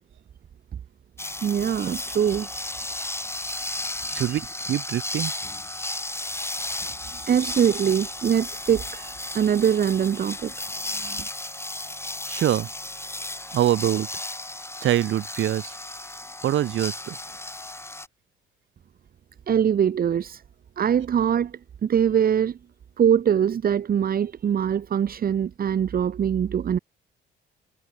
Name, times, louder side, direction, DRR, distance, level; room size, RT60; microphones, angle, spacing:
sound 1, 1.2-18.1, left 2 dB, 10° left, 6.9 m, -34 dB
voice 1, 1.4-3.1 3.4-4.4 6.8-11.3 19.5-20.4 20.8-22.6 23.0-26.8, right 8 dB, 50° right, 1.1 m, -24 dB
voice 2, 4.1-4.4 4.7-5.3 12.3-12.7 13.5-14.1 14.8-15.8 16.4-17.2, right 12 dB, 75° right, 2.4 m, -24 dB
cardioid pair, 90°, 20 cm